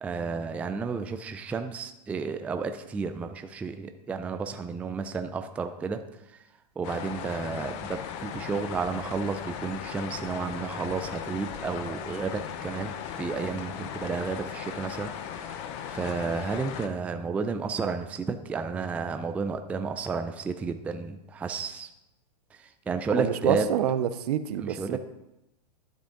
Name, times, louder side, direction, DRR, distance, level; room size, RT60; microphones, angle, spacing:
voice 1, 0.0-6.0 6.8-21.9 22.6-23.7 24.6-25.0, right 5 dB, 5° right, 8 dB, 0.3 m, -32 dB
sound 1, 6.8-16.9, left 8 dB, 45° left, 0.8 m, -37 dB
voice 2, 23.1-25.0, right 10 dB, 65° right, 13 dB, 0.6 m, -27 dB
12.0 x 5.0 x 3.7 m, 0.90 s
hypercardioid pair, 130°, 21 cm